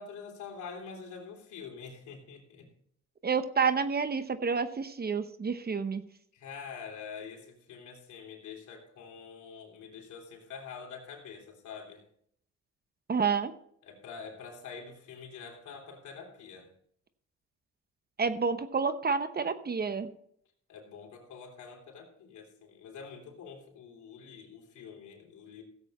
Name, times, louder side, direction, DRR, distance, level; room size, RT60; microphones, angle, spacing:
voice 1, 0.0-2.7 6.3-12.0 13.8-16.7 20.7-25.6, left 6 dB, 75° left, 0 dB, 3.4 m, -46 dB
voice 2, 3.2-6.0 13.1-13.5 18.2-20.1, right 5 dB, 30° right, 11 dB, 0.9 m, -29 dB
16.0 x 8.0 x 4.3 m, 0.68 s
cardioid pair, 90°, 30 cm